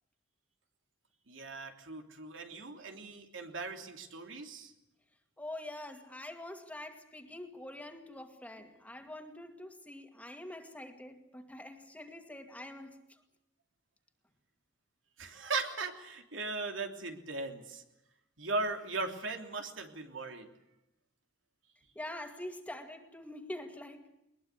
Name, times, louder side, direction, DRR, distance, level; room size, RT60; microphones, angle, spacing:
voice 1, 1.3-4.7 15.2-17.8 18.4-20.5, right 3 dB, 90° right, 4 dB, 3.2 m, -38 dB
voice 2, 5.4-13.2 21.9-24.1, left 1 dB, 10° left, 5 dB, 2.2 m, -45 dB
21.5 x 21.0 x 8.3 m, 0.87 s
head